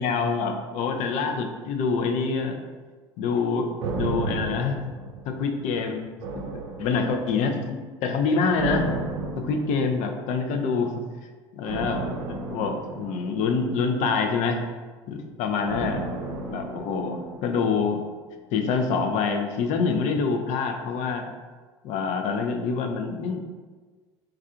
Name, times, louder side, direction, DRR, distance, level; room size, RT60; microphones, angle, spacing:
voice 1, 0.0-2.6 3.2-4.8 5.3-6.1 6.3-6.5 6.8-8.9 9.4-10.9 11.5-14.6 15.1-16.0 16.3-18.0 18.5-21.3 21.8-23.4, left 5 dB, 55° left, 5 dB, 0.4 m, -26 dB
sound 1, 3.8-5.7 6.2-7.5 8.5-10.3 11.7-14.1 15.7-17.8 18.1-18.2, right 3 dB, 75° right, 0.4 m, -33 dB
4.3 x 2.3 x 2.4 m, 1.4 s
hypercardioid pair, 70°, 15 cm